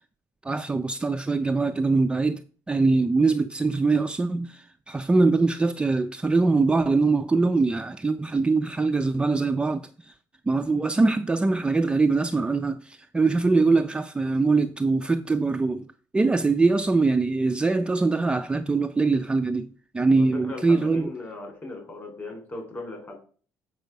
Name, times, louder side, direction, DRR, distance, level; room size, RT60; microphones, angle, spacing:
voice 1, 0.4-2.4 2.7-10.1 10.5-15.9 16.1-19.7 19.9-21.1, right 3 dB, 15° right, 0.4 m, -23 dB
voice 2, 20.1-23.1, left 2 dB, 30° left, 3.5 m, -38 dB
7.9 x 5.4 x 5.1 m
cardioid pair, 120°, 7 cm